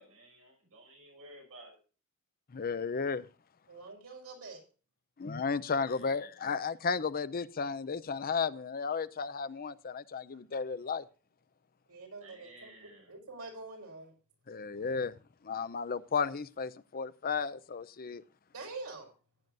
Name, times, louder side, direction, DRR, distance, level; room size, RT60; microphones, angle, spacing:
voice 1, 0.0-1.8 5.9-6.2 12.2-13.1, right 1 dB, 65° right, 5.3 m, -54 dB
voice 2, 2.5-3.2 5.2-11.0 14.5-15.1 15.4-18.2, left 5 dB, 40° left, 0.6 m, -34 dB
voice 3, 3.7-4.6 11.9-14.1 18.5-19.1, right 3 dB, 85° right, 5.1 m, -46 dB
17.0 x 9.2 x 2.6 m
head